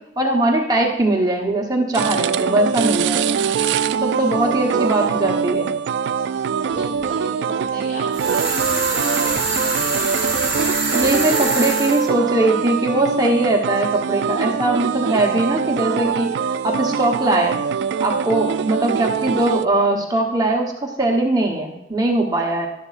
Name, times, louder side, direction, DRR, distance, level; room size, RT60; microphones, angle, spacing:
voice 1, 0.2-3.4 4.0-5.7 10.9-16.3 16.6-17.6 18.0-22.7, right 2 dB, 20° right, 0 dB, 1.0 m, -20 dB
sound 1, 1.9-19.7, right 6 dB, 70° right, 0.3 m, -23 dB
voice 2, 6.7-10.7, equal, 50° left, -2 dB, 3.7 m, -37 dB
sound 2, 8.1-12.1, right 3 dB, 5° right, 4.2 m, -24 dB
12.5 x 11.0 x 2.5 m, 0.93 s
head